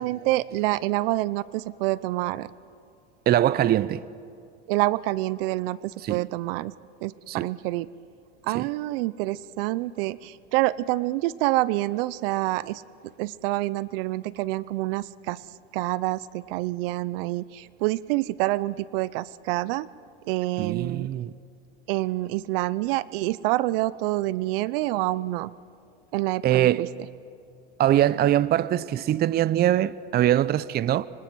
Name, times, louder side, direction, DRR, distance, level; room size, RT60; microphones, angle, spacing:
voice 1, 0.0-2.5 4.7-6.7 7.0-7.9 8.4-12.8 13.2-15.4 15.7-19.9 20.3-21.1 21.9-25.5 26.1-26.9, right 18 dB, 70° right, 0.7 m, -27 dB
voice 2, 3.3-4.0 6.0-6.2 7.3-7.5 8.5-8.7 20.6-21.3 26.4-26.9 27.8-31.1, right 12 dB, 35° right, 0.6 m, -22 dB
25.5 x 25.0 x 6.2 m
hypercardioid pair, 100°, 30 cm